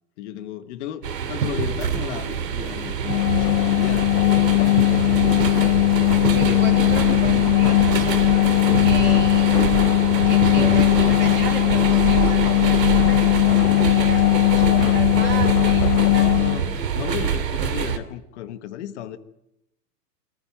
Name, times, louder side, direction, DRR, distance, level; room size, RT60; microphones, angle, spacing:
voice 1, 0.2-4.1 4.4-5.4 10.7-11.4 16.1-19.2, left 11 dB, 45° left, 1.5 m, -34 dB
sound 1, 1.0-18.0, right 7 dB, 85° right, 2.9 m, -25 dB
sound 2, 3.0-16.6, left 18 dB, 65° left, 1.0 m, -18 dB
voice 2, 6.0-9.8 10.2-16.5, right 4 dB, 20° right, 3.8 m, -34 dB
25.0 x 14.5 x 9.1 m
hypercardioid pair, 150°, 49 cm